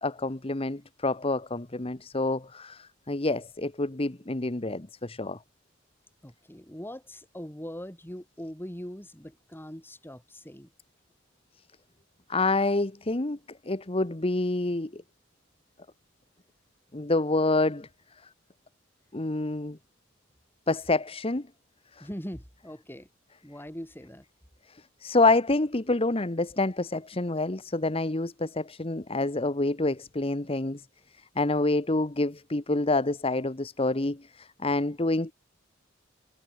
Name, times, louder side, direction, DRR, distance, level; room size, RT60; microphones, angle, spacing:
voice 1, 0.0-5.4 12.3-13.4 13.6-15.0 16.9-17.9 19.1-19.8 20.7-21.5 22.0-22.1 24.7-30.8 31.3-35.3, left 2 dB, 30° left, 1.2 m, -27 dB
voice 2, 6.2-10.7 22.0-23.1 23.4-24.2, equal, 10° left, 5.9 m, -41 dB
head